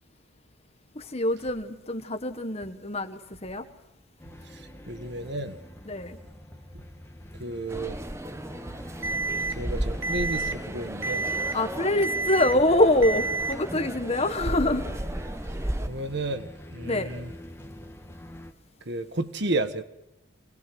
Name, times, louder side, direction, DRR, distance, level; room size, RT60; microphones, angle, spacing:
voice 1, 0.9-3.7 5.8-6.2 11.5-14.9 16.9-17.1, left 1 dB, 30° left, 1.4 m, -25 dB
sound 1, 4.2-18.5, left 1 dB, 10° left, 1.9 m, -45 dB
voice 2, 4.5-5.6 7.4-8.0 9.5-11.3 15.9-17.3 18.8-19.8, right 2 dB, 55° right, 1.5 m, -32 dB
sound 2, 7.7-15.9, right 1 dB, 15° right, 0.8 m, -35 dB
Alarm, 9.0-9.5 10.0-10.5 11.0-11.5 12.0-12.5 13.0-13.5, right 3 dB, 75° right, 2.3 m, -29 dB
24.5 x 20.5 x 6.1 m
head